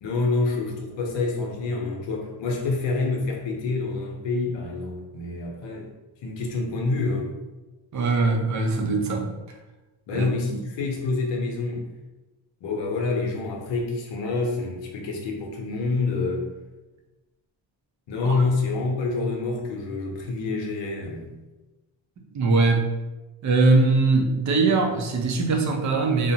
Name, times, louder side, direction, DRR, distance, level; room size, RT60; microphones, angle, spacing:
voice 1, 0.0-5.9 6.2-7.3 10.1-11.9 12.6-16.4 18.1-21.3, left 3 dB, 65° left, 0 dB, 0.8 m, -27 dB
voice 2, 7.9-9.3 10.1-10.6 18.2-18.4 22.3-22.9 23.4-26.3, right 3 dB, 40° right, 3 dB, 0.5 m, -21 dB
2.5 x 2.1 x 2.7 m, 1.1 s
cardioid pair, 95°, 48 cm